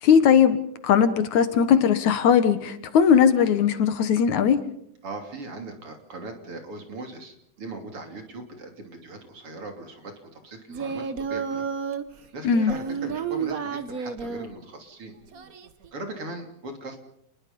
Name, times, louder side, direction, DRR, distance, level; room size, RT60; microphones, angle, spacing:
voice 1, 0.0-4.6 12.4-12.7, left 7 dB, 70° left, 2.6 m, -19 dB
voice 2, 5.0-11.7 12.3-15.1 15.9-17.0, right 2 dB, 45° right, 3.8 m, -39 dB
Singing, 10.7-12.0 12.5-14.5 15.3-15.9, right 6 dB, 60° right, 0.8 m, -31 dB
29.0 x 21.0 x 5.4 m
omnidirectional pair, 3.7 m